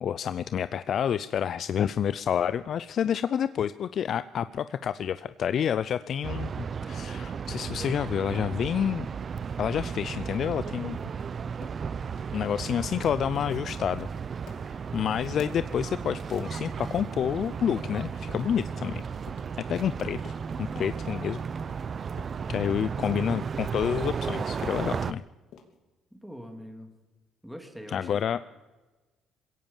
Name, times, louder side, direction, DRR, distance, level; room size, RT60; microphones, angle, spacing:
voice 1, 0.0-9.1 9.6-11.1 12.3-14.1 14.7-19.0 19.7-21.4 22.5-25.2 27.9-28.5, left 8 dB, 55° left, 14 dB, 0.6 m, -29 dB
sound 1, 6.2-25.1, right 6 dB, 40° right, 0.6 m, -34 dB
sound 2, 9.7-11.2 11.6-11.8 12.1-12.3 12.6-12.7 13.0-13.2 13.5-13.7 14.0-14.1 14.5-17.0 17.3-18.0 18.3-20.9 21.2-24.8 25.1-25.8, left 7 dB, 75° left, 3.0 m, -50 dB
voice 2, 26.1-26.9 27.4-28.1, equal, ahead, 4 dB, 3.1 m, -43 dB
21.5 x 17.0 x 7.3 m, 1.2 s
cardioid pair, 90°, 0 cm